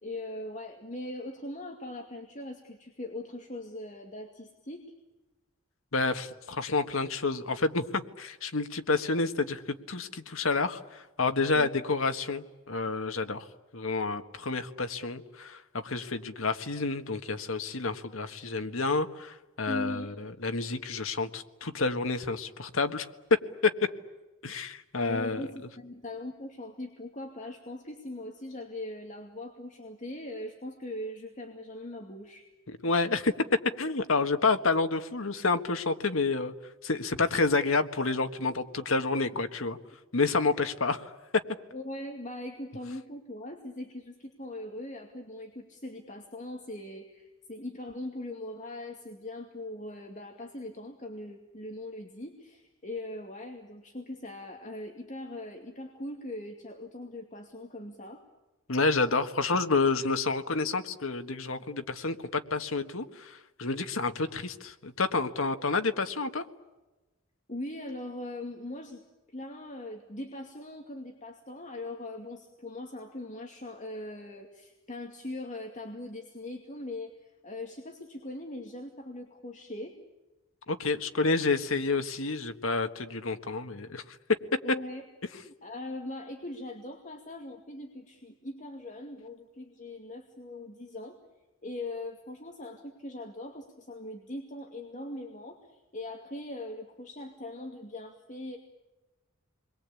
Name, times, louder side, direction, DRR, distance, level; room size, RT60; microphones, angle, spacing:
voice 1, 0.0-4.9 11.5-11.7 19.7-20.1 25.0-32.4 40.5-40.6 41.7-58.2 67.5-69.0 69.3-80.0 84.6-85.0 85.5-91.2 91.6-98.6, left 1 dB, 35° left, 2 dB, 2.4 m, -40 dB
voice 2, 5.9-13.5 13.7-23.1 24.4-25.4 32.7-33.3 33.8-36.5 36.8-39.8 40.1-41.1 58.7-66.4 80.7-84.0, left 3 dB, 80° left, 8 dB, 1.6 m, -29 dB
29.5 x 22.0 x 8.5 m, 1.1 s
head